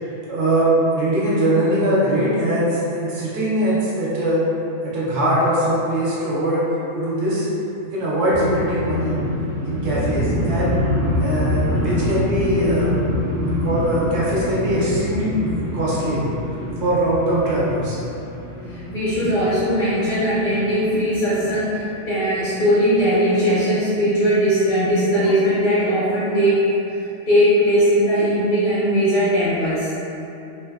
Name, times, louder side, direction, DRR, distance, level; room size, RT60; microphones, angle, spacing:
voice 1, 0.0-4.4 4.8-6.6 6.9-7.5 7.9-9.2 9.6-10.8 11.2-12.9 13.6-15.3 15.7-16.2 16.8-18.0, right 1 dB, 70° right, -8 dB, 0.9 m, -21 dB
sound 1, 8.3-22.2 22.6-23.0 23.3-23.6, left 1 dB, 30° right, 0.6 m, -26 dB
voice 2, 18.7-26.8 27.3-29.9, equal, 60° left, -11 dB, 0.6 m, -19 dB
2.6 x 2.1 x 2.3 m, 2.8 s
omnidirectional pair, 1.3 m